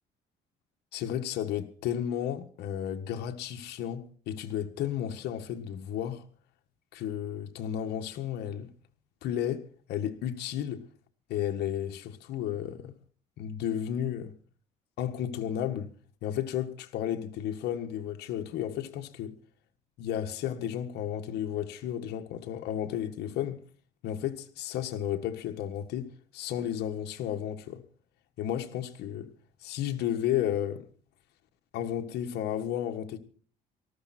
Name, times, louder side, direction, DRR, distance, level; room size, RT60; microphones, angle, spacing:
voice 1, 0.9-6.2 6.9-8.7 9.2-10.8 11.3-12.9 13.4-14.3 15.0-15.9 16.2-19.4 20.0-23.6 24.0-27.8 28.4-29.3 29.6-30.8 31.7-33.2, left 10 dB, 80° left, 1.7 m, -33 dB
19.0 x 14.5 x 4.4 m
cardioid pair, 110°, 17 cm